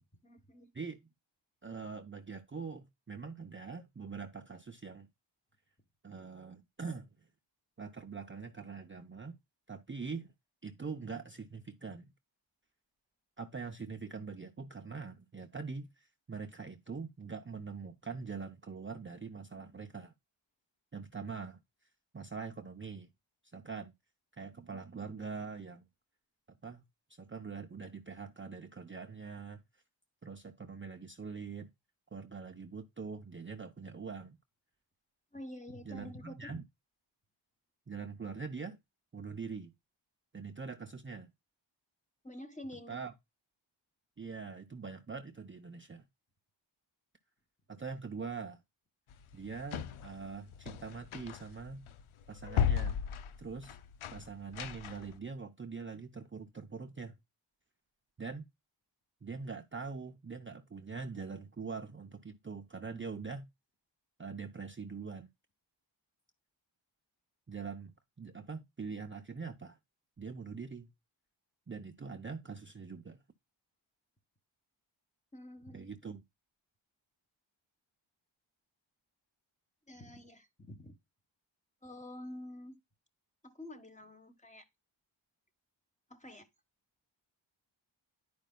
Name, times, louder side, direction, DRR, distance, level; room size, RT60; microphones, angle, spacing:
voice 1, 0.2-0.7 35.3-36.6 42.2-43.0 75.3-75.9 79.9-80.9 81.8-82.8 83.4-84.7 86.1-86.5, left 1 dB, 15° left, 1.2 m, -48 dB
voice 2, 1.6-5.1 6.0-7.1 7.8-9.4 9.7-10.3 10.6-12.1 13.4-20.1 20.9-21.6 22.1-23.1 23.5-23.9 24.4-25.8 26.5-26.8 27.1-29.6 30.2-31.7 32.1-34.4 35.9-36.6 37.9-38.8 39.1-39.7 40.3-41.3 42.9-43.1 44.2-46.1 47.7-48.6 49.3-51.9 52.3-53.0 53.4-53.8 54.1-57.2 58.2-58.5 59.2-63.5 64.2-65.3 67.5-69.8 70.2-70.9 71.7-73.2 75.7-76.2, right 5 dB, 25° right, 0.6 m, -43 dB
sound 1, 49.1-55.2, left 8 dB, 90° left, 0.5 m, -36 dB
10.5 x 5.0 x 2.2 m
cardioid pair, 55°, 48 cm